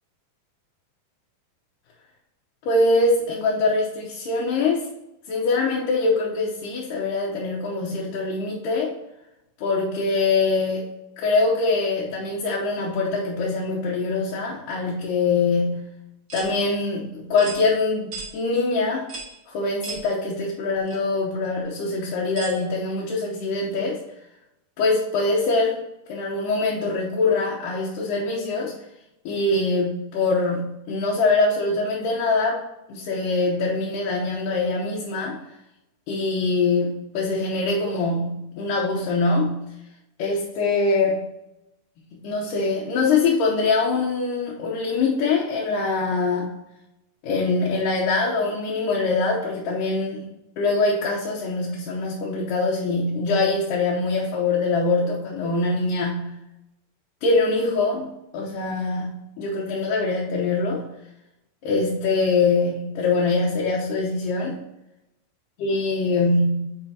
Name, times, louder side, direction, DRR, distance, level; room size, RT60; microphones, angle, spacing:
voice 1, 2.6-4.9 5.3-8.9 9.6-10.9 11.2-15.9 16.3-19.1 19.5-24.0 24.8-25.8 26.1-28.7 29.3-35.4 36.1-39.7 40.2-41.2 42.1-46.5 47.2-50.2 50.6-56.4 57.2-60.9 61.6-64.6 65.6-66.7, left 3 dB, 75° left, -4 dB, 2.4 m, -23 dB
sound 1, 16.3-16.5 17.4-17.6 18.1-18.3 19.1-19.3 19.8-20.0 20.9-21.0 22.4-22.6, right 3 dB, 55° right, 0.8 m, -35 dB
9.3 x 4.9 x 2.8 m, 0.89 s
omnidirectional pair, 4.1 m